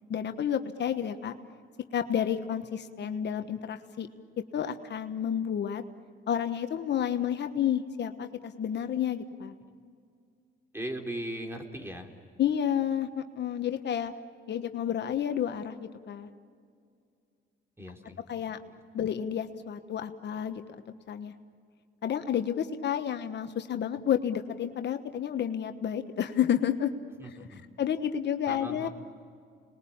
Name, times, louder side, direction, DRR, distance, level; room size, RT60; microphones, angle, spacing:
voice 1, 0.1-1.3 1.9-4.1 4.5-5.8 6.3-9.6 12.4-14.1 14.5-16.3 18.3-18.6 18.9-20.6 21.1-21.3 22.0-26.9 27.2-27.4 27.8-28.9, left 9 dB, 60° left, 8 dB, 1.3 m, -30 dB
voice 2, 10.7-12.1 17.8-18.2 18.6-18.7 27.2-27.6 28.5-28.9, right 1 dB, 10° right, 4 dB, 3.5 m, -38 dB
30.0 x 21.0 x 8.7 m, 2.3 s
cardioid pair, 90°, 20 cm